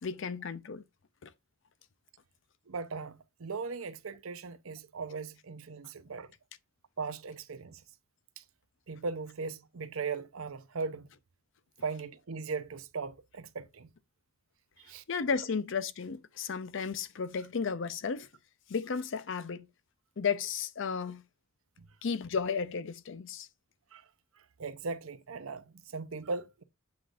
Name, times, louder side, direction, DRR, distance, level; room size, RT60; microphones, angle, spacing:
voice 1, 0.0-0.8 1.2-1.3 15.1-18.3 18.7-19.7 20.2-21.2 22.0-23.5, left 5 dB, 65° left, 0.5 m, -33 dB
voice 2, 2.7-6.3 7.0-7.8 8.4-8.5 8.9-11.1 11.8-13.9 14.8-15.0 21.8-21.9 23.9-24.0 24.4-26.6, right 4 dB, 85° right, 0.7 m, -38 dB
7.8 x 5.1 x 2.5 m
head